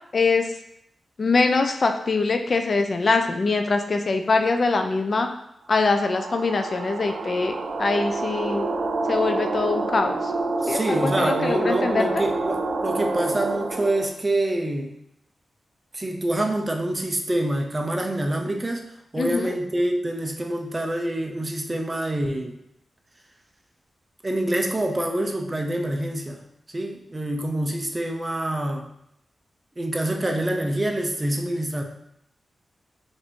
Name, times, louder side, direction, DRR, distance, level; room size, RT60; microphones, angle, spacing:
voice 1, 0.1-0.5 1.2-5.3 5.7-8.7 9.1-10.3 10.7-12.1 19.2-19.5, left 3 dB, 45° left, 6 dB, 0.4 m, -23 dB
sound 1, 5.8-14.1, right 3 dB, 75° right, 0.4 m, -28 dB
voice 2, 10.6-14.9 15.9-22.6 24.2-26.4 26.7-28.9 29.8-31.8, right 1 dB, 20° right, 3 dB, 0.5 m, -26 dB
4.8 x 2.6 x 3.6 m, 0.77 s
wide cardioid pair, 110°, 0 cm